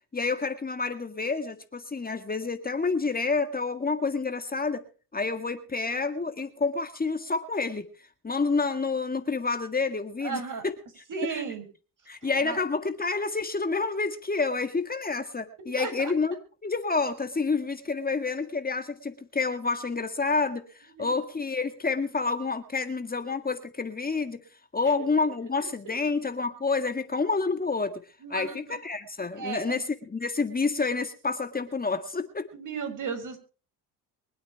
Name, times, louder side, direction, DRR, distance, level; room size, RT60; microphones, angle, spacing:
voice 1, 0.1-4.9 5.1-7.9 8.2-10.4 11.3-11.4 12.1-16.4 16.6-24.4 24.7-28.0 28.3-32.5, left 4 dB, 20° left, 8 dB, 1.8 m, -28 dB
voice 2, 10.2-10.6 11.1-11.7 12.2-12.6 15.8-16.1 21.0-21.1 28.2-28.8 29.3-29.8 32.5-33.4, right 5 dB, 50° right, 7 dB, 6.0 m, -35 dB
24.0 x 8.8 x 4.6 m, 0.37 s
supercardioid pair, 85°, 39 cm